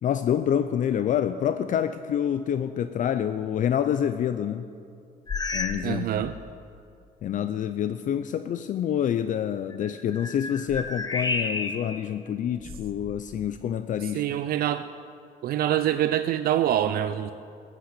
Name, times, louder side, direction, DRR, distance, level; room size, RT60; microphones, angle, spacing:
voice 1, 0.0-4.7 5.5-6.3 7.2-14.2, left 9 dB, 50° left, 11 dB, 0.5 m, -27 dB
sound 1, 5.3-5.9 6.2-6.5 7.2-7.3 9.7-12.0 12.6-13.6, left 3 dB, 25° left, 0.9 m, -32 dB
voice 2, 5.8-6.3 14.0-14.9 15.4-17.3, right 11 dB, 65° right, 11 dB, 0.5 m, -25 dB
14.0 x 8.1 x 8.5 m, 2.4 s
cardioid pair, 110°, 17 cm